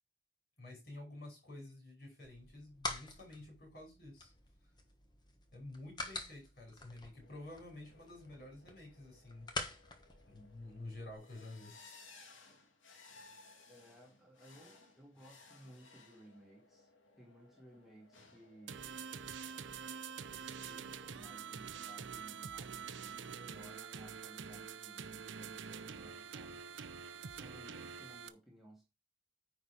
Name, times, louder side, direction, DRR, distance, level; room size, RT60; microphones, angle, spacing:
voice 1, 0.6-4.3 5.5-9.5 10.3-11.7, left 2 dB, 50° left, 5.6 m, -50 dB
sound 1, 2.2-11.1, left 2 dB, 20° left, 1.2 m, -47 dB
sound 2, 7.2-21.3, left 3 dB, 80° left, 2.2 m, -62 dB
voice 2, 13.7-16.9 17.2-19.0 19.4-26.6 27.3-28.8, equal, ahead, 1.9 m, -59 dB
sound 3, 18.7-28.3, right 7 dB, 75° right, 0.6 m, -46 dB
9.6 x 4.4 x 4.8 m
head